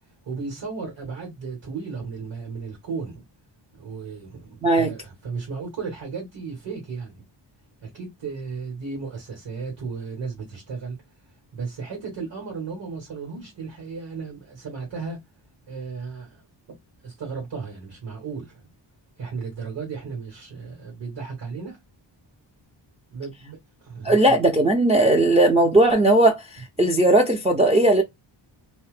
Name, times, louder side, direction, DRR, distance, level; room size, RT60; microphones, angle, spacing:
voice 1, 0.2-3.2 3.7-7.2 7.8-11.0 11.5-15.2 15.7-16.4 17.0-18.7 19.2-21.8 23.1-24.2, right 5 dB, 70° right, 1.6 m, -35 dB
voice 2, 4.6-4.9 24.0-26.4 26.8-28.0, right 1 dB, 15° right, 0.3 m, -17 dB
2.7 x 2.0 x 3.2 m
wide cardioid pair, 170°, 46 cm